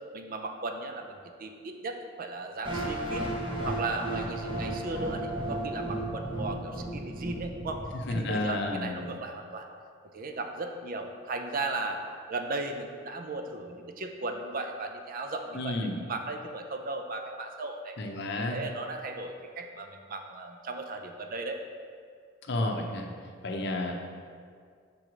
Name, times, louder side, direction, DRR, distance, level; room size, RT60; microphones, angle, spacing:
voice 1, 0.1-3.2 3.6-7.8 8.1-9.7 10.1-12.0 12.3-15.8 16.1-18.0 18.4-21.6, right 2 dB, 45° right, 5 dB, 0.5 m, -36 dB
sound 1, 2.6-8.7, right 1 dB, 25° right, 1.0 m, -34 dB
voice 2, 7.9-9.1 15.5-16.0 18.0-18.6 22.5-23.1 23.4-24.0, left 2 dB, 60° left, 2 dB, 0.7 m, -31 dB
5.4 x 4.6 x 5.0 m, 2.1 s
head